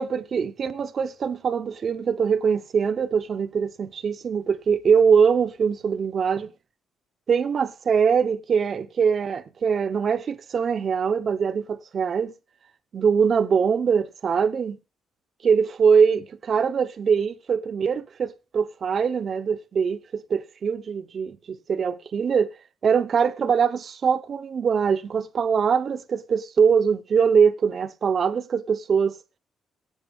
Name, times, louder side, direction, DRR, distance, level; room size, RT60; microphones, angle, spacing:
voice 1, 0.0-6.5 7.3-12.3 12.9-14.8 15.4-22.5 22.8-29.2, right 6 dB, 50° right, 0.8 m, -22 dB
17.0 x 8.0 x 3.6 m
cardioid pair, 90°, 0 cm